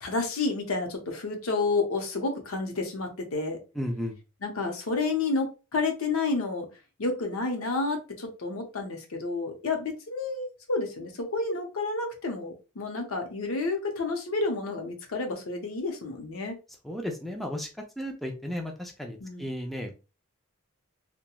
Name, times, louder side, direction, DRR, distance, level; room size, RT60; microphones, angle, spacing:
voice 1, 0.0-3.6 4.4-6.7 7.0-16.6 19.2-19.5, left 3 dB, 90° left, 4 dB, 0.7 m, -30 dB
voice 2, 3.8-4.2 16.8-17.7 18.0-19.9, equal, ahead, 1 dB, 0.3 m, -34 dB
2.9 x 2.2 x 2.2 m, 0.30 s
head